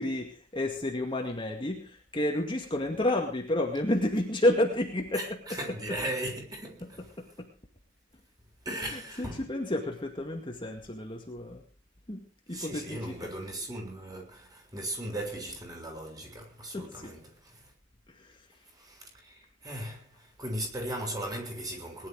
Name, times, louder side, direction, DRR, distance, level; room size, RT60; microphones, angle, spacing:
voice 1, 0.0-5.4 6.8-6.9 7.2-7.5 8.8-11.6 12.1-13.3 16.7-17.1, left 1 dB, 25° left, 2.1 m, -30 dB
voice 2, 5.1-7.1 8.6-9.5 12.5-17.7 18.7-22.1, right 1 dB, 20° right, 6.5 m, -38 dB
20.5 x 11.5 x 4.9 m
head